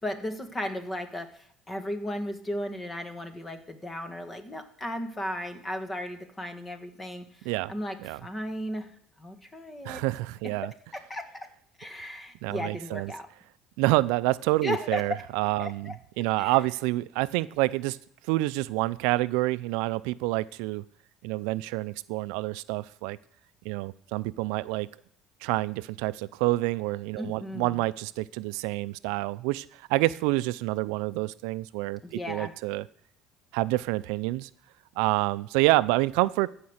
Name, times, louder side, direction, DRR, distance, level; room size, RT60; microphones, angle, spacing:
voice 1, 0.0-8.9 9.2-10.0 11.1-11.2 11.8-13.3 14.6-15.0 15.6-15.9 16.4-16.6 27.2-27.8 32.0-32.5, left 1 dB, 15° left, 8 dB, 1.6 m, -35 dB
voice 2, 9.8-10.7 12.4-13.1 13.8-18.0 18.3-20.8 21.2-23.2 23.6-24.9 25.4-32.9 33.5-34.5 35.0-36.5, right 19 dB, 90° right, 17 dB, 0.4 m, -28 dB
14.5 x 5.2 x 8.0 m, 0.62 s
cardioid pair, 120°, 0 cm